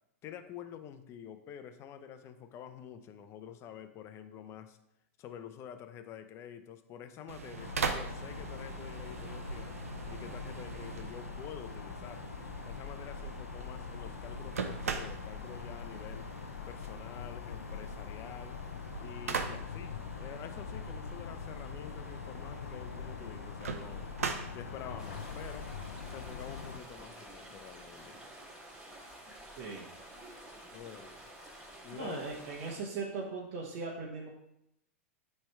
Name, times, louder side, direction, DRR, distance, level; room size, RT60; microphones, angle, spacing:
voice 1, 0.2-4.8 5.2-9.8 10.1-12.3 12.7-16.3 16.7-18.6 19.0-24.1 24.5-25.7 26.1-28.2 30.7-31.1 31.8-32.4, left 9 dB, 35° left, 9 dB, 0.7 m, -48 dB
sound 1, 7.3-26.8, right 5 dB, 85° right, 0.7 m, -42 dB
sound 2, 7.6-26.8, left 7 dB, 85° left, 0.4 m, -44 dB
sound 3, 25.0-32.8, right 1 dB, 10° right, 2.5 m, -50 dB
voice 2, 29.5-29.9 31.9-34.3, right 4 dB, 50° right, -2 dB, 1.2 m, -39 dB
8.9 x 3.4 x 4.6 m, 0.83 s
hypercardioid pair, 110°, 8 cm